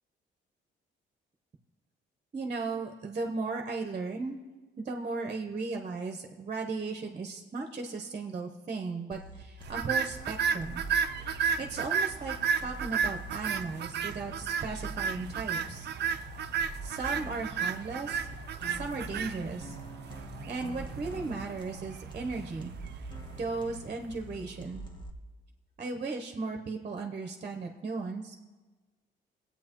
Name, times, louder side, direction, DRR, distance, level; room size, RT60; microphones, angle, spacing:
voice 1, 2.3-4.4 4.8-10.8 11.4-15.9 16.4-16.5 16.8-18.3 18.7-19.8 20.4-22.7 23.4-24.8 25.8-28.3, right 3 dB, 35° right, 3 dB, 0.9 m, -36 dB
sound 1, 9.1-25.1, right 1 dB, 25° left, 1.3 m, -45 dB
sound 2, 9.7-24.0, right 7 dB, 60° right, 0.5 m, -33 dB
18.5 x 8.5 x 3.0 m, 1.3 s
cardioid pair, 90°, 20 cm